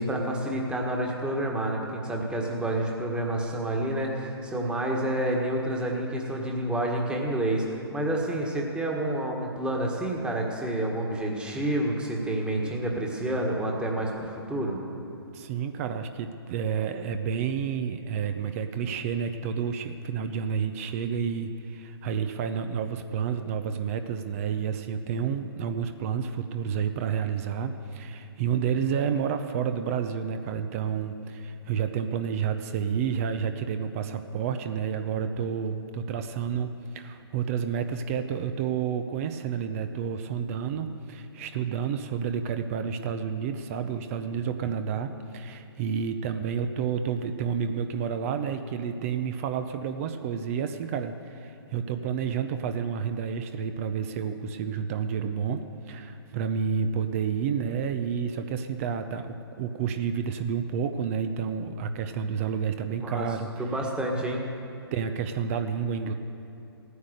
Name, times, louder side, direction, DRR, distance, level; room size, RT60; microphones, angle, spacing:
voice 1, 0.0-14.8 63.0-63.2 63.6-64.4, right 1 dB, 5° right, 0 dB, 1.6 m, -29 dB
voice 2, 15.3-63.5 64.9-66.1, right 7 dB, 35° right, 8 dB, 0.6 m, -30 dB
16.0 x 9.6 x 6.5 m, 2.8 s
hypercardioid pair, 135°, 14 cm